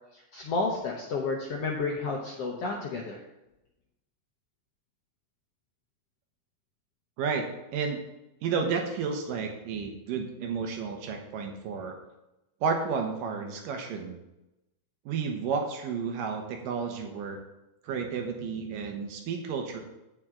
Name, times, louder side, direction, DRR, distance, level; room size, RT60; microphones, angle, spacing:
voice 1, 0.3-3.2, left 3 dB, 75° left, -1 dB, 1.4 m, -31 dB
voice 2, 7.2-8.0 8.4-11.9 12.6-14.2 15.1-17.4 17.8-19.8, right 5 dB, 75° right, 3 dB, 2.7 m, -32 dB
9.1 x 8.4 x 3.7 m, 0.94 s
omnidirectional pair, 4.0 m